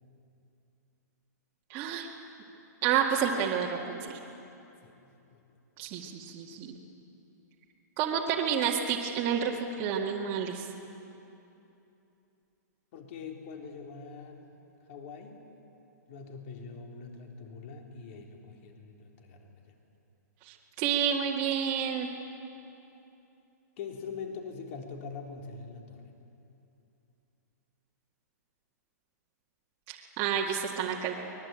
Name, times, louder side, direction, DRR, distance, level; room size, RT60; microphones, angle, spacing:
voice 1, 1.7-2.1 2.8-4.2 5.8-6.8 8.0-9.5 9.8-10.6 20.5-22.1 29.9-31.1, right 8 dB, 30° right, -2 dB, 2.0 m, -29 dB
voice 2, 12.9-14.6 14.9-15.4 16.1-19.7 23.8-26.1, left 5 dB, 45° left, 2 dB, 3.6 m, -43 dB
24.0 x 20.5 x 9.0 m, 2.8 s
hypercardioid pair, 155°, 10 cm